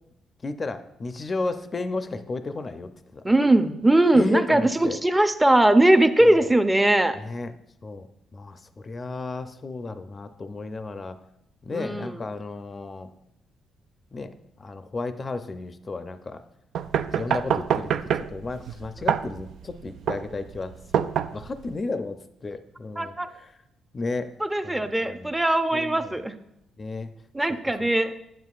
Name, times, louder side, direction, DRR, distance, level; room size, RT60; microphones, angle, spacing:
voice 1, 0.4-3.2 4.1-5.0 6.2-6.5 7.2-7.5 7.8-8.1 8.3-11.2 11.6-13.1 14.1-16.4 17.1-23.6 23.9-24.3 24.6-25.3 25.7-26.2 26.8-27.1 27.6-27.9, left 3 dB, 35° left, 9 dB, 0.5 m, -33 dB
voice 2, 3.2-7.2 11.7-12.2 23.0-23.3 24.4-26.4 27.3-28.1, right 1 dB, 10° right, 9 dB, 0.6 m, -20 dB
sound 1, 16.7-21.7, right 8 dB, 70° right, 0.3 m, -27 dB
9.4 x 7.7 x 2.4 m, 0.80 s
cardioid pair, 90°, 0 cm